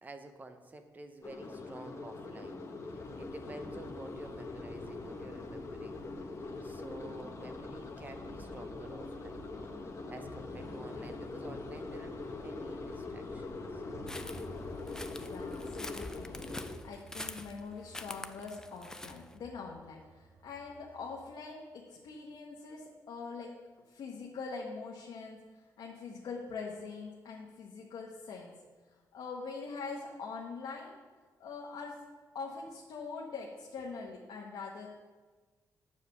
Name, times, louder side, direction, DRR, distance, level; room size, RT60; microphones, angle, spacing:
voice 1, 0.0-9.4 9.7-13.8, right 2 dB, 25° right, 7 dB, 0.7 m, -50 dB
sound 1, 1.2-16.8, left 3 dB, 40° left, 1.0 m, -42 dB
sound 2, 13.9-21.3, right 1 dB, 45° right, 1.1 m, -54 dB
sound 3, 14.1-19.3, left 1 dB, 10° left, 0.3 m, -45 dB
voice 2, 15.1-16.5 16.8-23.5 23.9-25.4 25.8-28.5 29.1-31.0 31.4-32.0 32.3-34.9, left 4 dB, 75° left, -2 dB, 1.1 m, -43 dB
8.4 x 4.9 x 6.6 m, 1.4 s
wide cardioid pair, 160°, 7 cm